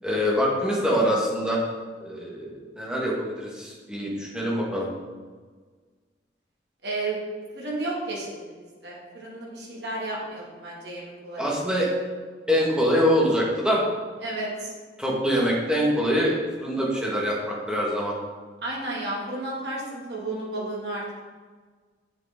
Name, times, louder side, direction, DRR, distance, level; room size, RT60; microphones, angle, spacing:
voice 1, 0.0-1.6 2.0-4.9 11.4-11.9 12.5-13.8 15.0-18.1, equal, 5° right, -4 dB, 1.6 m, -24 dB
voice 2, 6.8-7.2 7.5-8.5 8.8-11.5 14.2-14.7 18.6-21.2, right 2 dB, 60° right, -4 dB, 2.3 m, -32 dB
8.2 x 7.0 x 3.7 m, 1.5 s
head